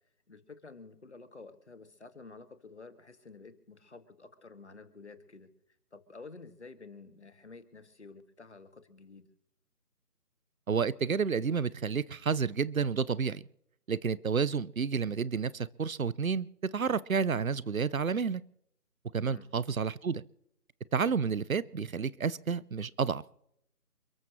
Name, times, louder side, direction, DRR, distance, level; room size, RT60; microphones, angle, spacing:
voice 1, 0.3-5.5 5.9-9.3 19.2-19.5 22.5-22.6, left 4 dB, 45° left, 9 dB, 2.0 m, -51 dB
voice 2, 10.7-13.4 13.9-16.5 16.7-18.4 19.1-20.2 20.9-23.2, right 6 dB, 65° right, 21 dB, 0.8 m, -30 dB
29.0 x 13.0 x 3.2 m, 0.75 s
figure-of-eight pair, 170°, 45 cm